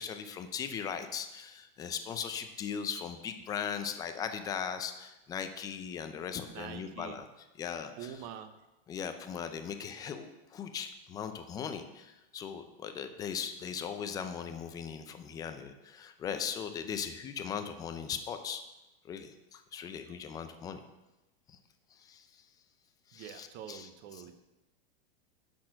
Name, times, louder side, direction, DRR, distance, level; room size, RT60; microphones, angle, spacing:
voice 1, 0.0-7.3 7.6-8.1 8.9-18.6 19.0-20.8 21.5-21.6 22.0-22.3 23.1-23.9 24.1-24.2, left 7 dB, 10° left, 8 dB, 0.4 m, -39 dB
voice 2, 6.5-7.2 8.0-8.5 23.1-24.4, right 9 dB, 35° right, 9 dB, 0.7 m, -45 dB
10.5 x 4.3 x 6.3 m, 1.0 s
supercardioid pair, 150°, 30 cm